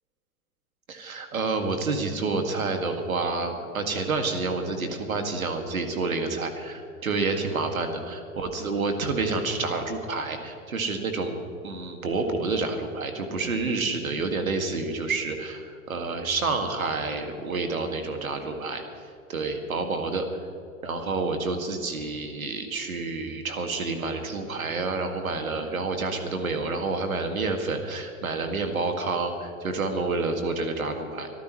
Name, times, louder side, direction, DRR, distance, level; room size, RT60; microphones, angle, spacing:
voice 1, 0.9-11.4 11.6-18.8 19.3-20.2 20.8-31.3, right 3 dB, 80° right, 5 dB, 2.2 m, -29 dB
24.5 x 14.5 x 3.2 m, 2.7 s
figure-of-eight pair, 95°, 41 cm